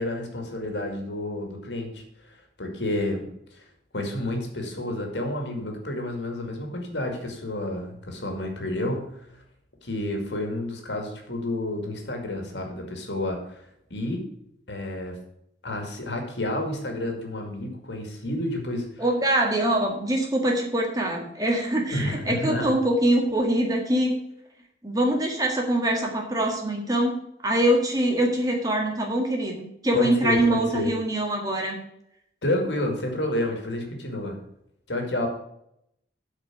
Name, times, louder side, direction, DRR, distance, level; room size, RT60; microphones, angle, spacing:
voice 1, 0.0-2.0 2.3-3.6 3.9-9.1 9.8-13.6 13.9-14.3 14.7-15.2 15.6-18.9 21.9-22.8 29.9-30.9 32.4-34.4 34.9-35.3, left 1 dB, 80° left, 3 dB, 2.3 m, -30 dB
voice 2, 19.0-24.2 24.8-27.2 27.4-31.8, right 1 dB, 20° right, 1 dB, 1.7 m, -24 dB
8.4 x 5.0 x 7.5 m, 0.76 s
head